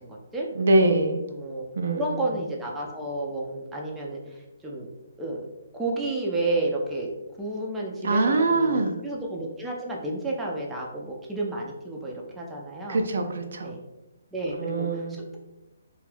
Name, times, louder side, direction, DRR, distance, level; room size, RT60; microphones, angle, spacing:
voice 1, 0.0-0.5 1.3-1.6 1.9-4.3 4.6-4.9 5.2-5.5 5.7-7.1 7.4-13.0 13.6-13.8 14.3-15.4, right 2 dB, 5° right, -3 dB, 0.4 m, -31 dB
voice 2, 0.6-1.2 1.8-2.3 8.0-9.0 12.9-13.7 14.6-15.2, right 2 dB, 65° right, 5 dB, 0.4 m, -23 dB
2.4 x 2.3 x 3.3 m, 0.99 s
hypercardioid pair, 150°, 0 cm